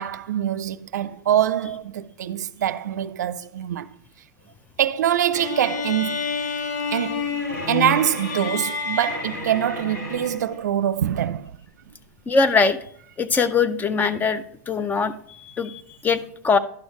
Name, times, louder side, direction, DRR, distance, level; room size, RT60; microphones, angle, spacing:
voice 1, 0.0-3.9 4.8-6.2 6.9-7.4 7.7-11.5 11.9-12.0, right 10 dB, 85° right, 0.4 m, -24 dB
sound 1, 5.3-10.6, left 4 dB, 85° left, 2.1 m, -29 dB
voice 2, 12.3-12.8 13.2-16.6, left 4 dB, 20° left, 0.5 m, -22 dB
11.5 x 6.3 x 3.1 m
hypercardioid pair, 115°, 9 cm